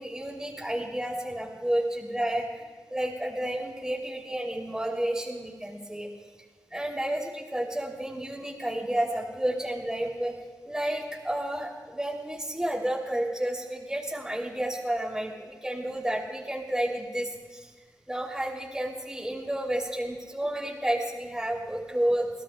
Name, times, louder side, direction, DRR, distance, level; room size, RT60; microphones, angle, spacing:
voice 1, 0.0-2.6 2.9-6.1 6.7-10.3 10.6-17.7 18.1-22.3, right 1 dB, 10° right, -2 dB, 3.1 m, -31 dB
24.5 x 17.5 x 2.4 m, 1.5 s
cardioid pair, 65°, 7 cm